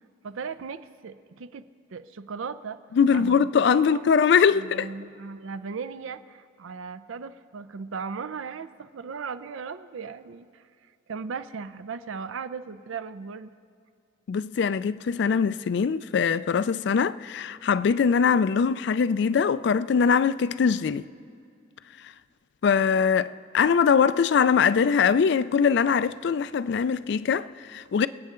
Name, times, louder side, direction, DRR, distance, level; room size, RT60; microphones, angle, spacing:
voice 1, 0.2-2.8 3.1-4.0 4.5-10.6 11.1-13.5, right 5 dB, 75° right, 0.5 m, -37 dB
voice 2, 3.0-4.9 14.3-21.1 22.6-28.1, left 6 dB, 55° left, 0.3 m, -22 dB
26.0 x 8.8 x 3.7 m
head